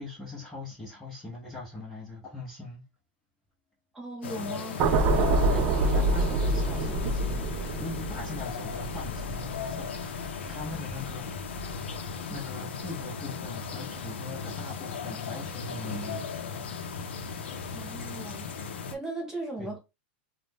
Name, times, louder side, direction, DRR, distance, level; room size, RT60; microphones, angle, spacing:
voice 1, 0.0-2.8 5.5-11.8 12.3-16.3 19.6-19.7, left 2 dB, 10° left, 0.7 m, -41 dB
voice 2, 3.9-4.8 17.7-18.4 18.9-19.8, right 2 dB, 10° right, 1.1 m, -37 dB
sound 1, 4.2-18.9, left 5 dB, 90° left, 0.5 m, -37 dB
sound 2, 4.8-11.1 11.5-11.7, right 2 dB, 35° right, 0.3 m, -27 dB
2.5 x 2.1 x 3.3 m
supercardioid pair, 150°, 6 cm